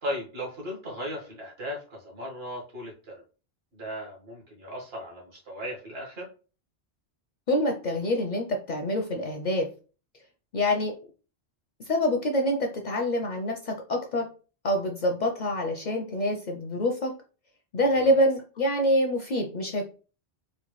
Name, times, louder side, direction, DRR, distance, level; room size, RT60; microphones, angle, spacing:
voice 1, 0.0-3.2 3.7-6.3 18.0-18.1, equal, 65° right, -2 dB, 1.6 m, -37 dB
voice 2, 7.5-9.7 10.5-10.9 11.9-14.3 14.6-17.1 17.7-19.8, left 1 dB, 55° left, 2 dB, 0.5 m, -26 dB
4.2 x 2.3 x 3.0 m, 0.36 s
omnidirectional pair, 1.1 m